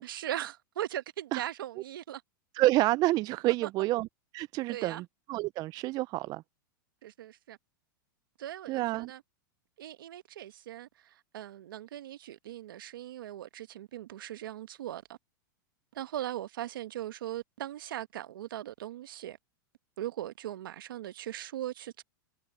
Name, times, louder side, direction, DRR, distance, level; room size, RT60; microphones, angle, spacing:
voice 1, 0.0-2.2 3.4-3.5 4.7-5.0 7.0-7.6 8.4-9.2 9.8-15.2 15.9-19.4 20.0-22.0, right 12 dB, 75° right, 1.3 m, -39 dB
voice 2, 2.6-4.1 4.3-6.4 8.7-9.1, right 18 dB, 35° right, 0.4 m, -28 dB
hypercardioid pair, 120°, 11 cm